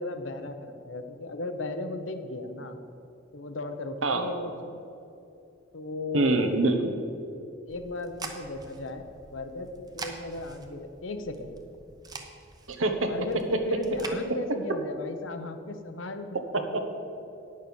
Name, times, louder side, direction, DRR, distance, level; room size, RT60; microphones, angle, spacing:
voice 1, 0.0-2.8 3.3-4.8 5.7-6.5 7.7-9.0 9.3-11.5 13.1-16.4, left 2 dB, 70° left, 8 dB, 0.8 m, -36 dB
voice 2, 6.1-6.9 12.7-13.1 16.7-16.8, right 2 dB, 85° right, 6 dB, 1.1 m, -24 dB
sound 1, 7.7-14.2, right 3 dB, 20° right, 0.8 m, -44 dB
9.6 x 6.6 x 7.0 m, 2.7 s
head